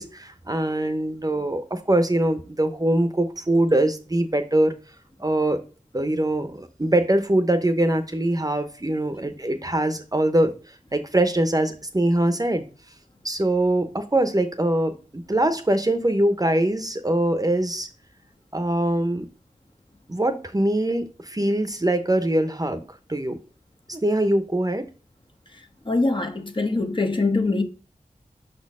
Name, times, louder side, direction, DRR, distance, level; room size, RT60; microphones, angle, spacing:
voice 1, 0.0-4.7 5.2-5.6 5.9-12.7 13.2-17.9 18.5-19.3 20.1-22.8 23.1-23.4 23.9-24.9, right 1 dB, 25° right, 0.9 m, -23 dB
voice 2, 25.9-27.6, left 3 dB, 35° left, 1.0 m, -23 dB
5.6 x 4.2 x 5.5 m
wide cardioid pair, 55°, 14 cm